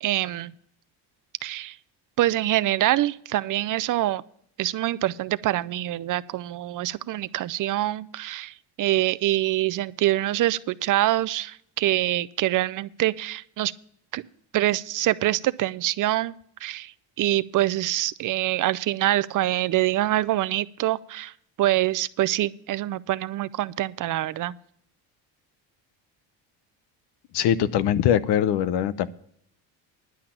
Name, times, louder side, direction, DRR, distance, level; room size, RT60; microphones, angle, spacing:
voice 1, 0.0-0.5 1.4-1.8 2.2-4.2 4.6-13.7 14.1-14.2 14.5-16.3 16.6-16.9 17.2-21.3 21.6-24.5, right 15 dB, 50° right, 18 dB, 0.5 m, -25 dB
voice 2, 27.3-29.1, left 10 dB, 70° left, 16 dB, 0.8 m, -22 dB
11.0 x 5.8 x 8.7 m, 0.66 s
cardioid pair, 115°, 42 cm